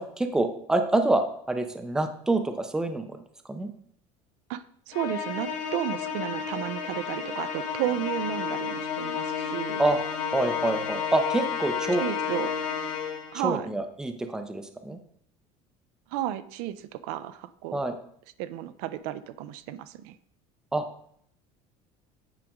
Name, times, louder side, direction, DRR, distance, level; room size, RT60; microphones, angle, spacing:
voice 1, 0.0-3.2 3.5-3.7 9.8-10.0 10.3-12.0 13.3-15.0 17.7-17.9 20.7-20.8, right 2 dB, 5° right, 6 dB, 0.5 m, -26 dB
voice 2, 4.5-9.8 12.0-12.5 13.3-13.7 16.1-17.8 18.4-20.2, right 12 dB, 75° right, 13 dB, 0.5 m, -33 dB
Musical instrument, 4.9-13.4, left 7 dB, 70° left, 1.2 m, -31 dB
8.8 x 5.1 x 3.6 m, 0.66 s
cardioid pair, 165°, 15 cm